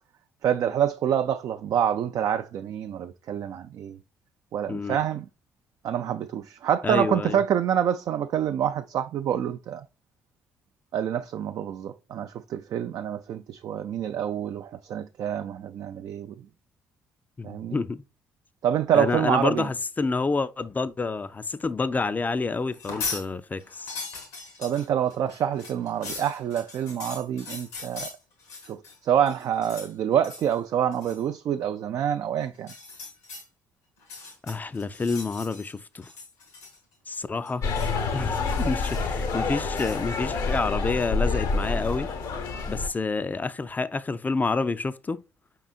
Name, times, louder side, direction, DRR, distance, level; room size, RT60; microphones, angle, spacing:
voice 1, 0.4-4.0 4.5-5.2 5.8-9.8 10.9-16.3 17.4-17.8 18.6-19.7 24.6-28.1 28.7-28.8 29.0-32.7, right 9 dB, 55° right, 0.3 m, -27 dB
voice 2, 4.7-5.0 6.8-7.4 17.4-18.0 18.9-24.0 34.4-36.1 37.1-37.7 38.1-42.1 42.7-45.2, left 4 dB, 25° left, 0.4 m, -28 dB
sound 1, 22.7-23.3 23.6-29.0 29.3-29.9 30.2-30.5 30.9-31.2 32.6-33.4 34.0-35.7 36.0-36.9 37.2-38.0 38.3-39.2 39.7-40.0, left 4 dB, 90° left, 1.9 m, -39 dB
sound 2, 37.6-42.9, left 4 dB, 65° left, 0.9 m, -27 dB
5.4 x 3.8 x 2.3 m
hypercardioid pair, 50°, 7 cm